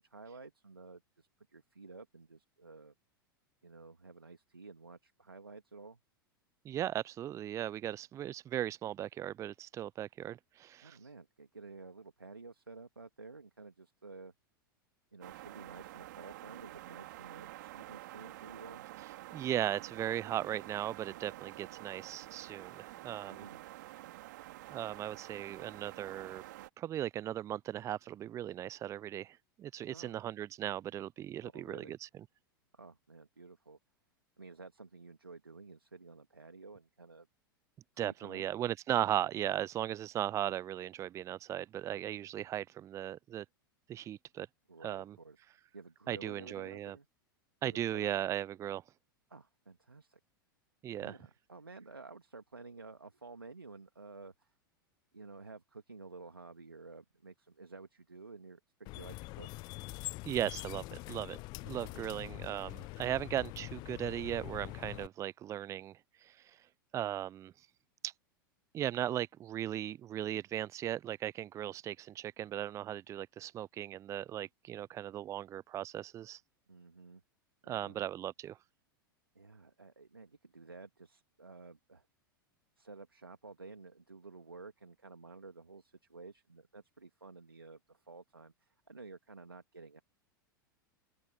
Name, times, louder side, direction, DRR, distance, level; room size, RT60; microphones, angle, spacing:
voice 1, 0.0-2.9 3.6-6.0 10.8-14.3 15.1-18.9 23.3-23.6 29.9-30.2 31.4-32.0 32.7-33.8 34.4-37.3 37.9-38.5 44.7-45.4 45.7-47.1 47.6-48.1 49.3-50.2 51.0-54.6 55.1-59.5 61.9-62.4 76.7-77.2 77.6-78.0 79.4-82.1 82.8-90.0, right 3 dB, 85° right, 2.2 m, -52 dB
voice 2, 6.6-11.0 19.3-23.4 24.7-26.4 26.8-32.1 38.0-43.4 43.9-44.5 44.8-45.2 46.1-47.0 47.6-48.8 50.8-51.1 60.3-61.4 61.6-66.3 66.9-67.5 68.0-68.1 68.7-76.4 77.7-78.6, right 11 dB, 25° right, 0.6 m, -37 dB
sound 1, 15.2-26.7, right 17 dB, 55° right, 3.3 m, -49 dB
sound 2, 58.9-65.1, left 22 dB, 40° left, 0.6 m, -44 dB
open air
figure-of-eight pair, 90°, 12 cm